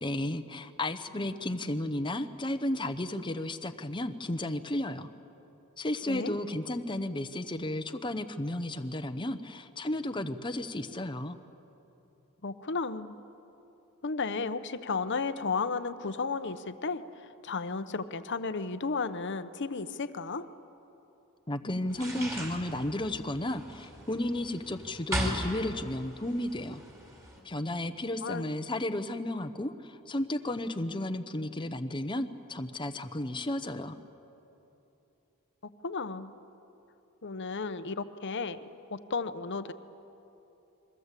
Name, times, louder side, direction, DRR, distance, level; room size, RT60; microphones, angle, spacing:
voice 1, 0.0-5.1 5.8-11.4 21.5-26.8 27.4-34.0, left 1 dB, 20° left, 8 dB, 0.9 m, -33 dB
voice 2, 12.4-13.2 14.0-17.0 17.4-20.5 28.2-28.5 35.6-36.3 37.2-38.6 38.9-39.7, left 4 dB, 55° left, 12 dB, 0.9 m, -33 dB
sound 1, 21.9-27.4, equal, 15° right, 4.9 m, -38 dB
29.0 x 22.5 x 8.4 m, 3.0 s
head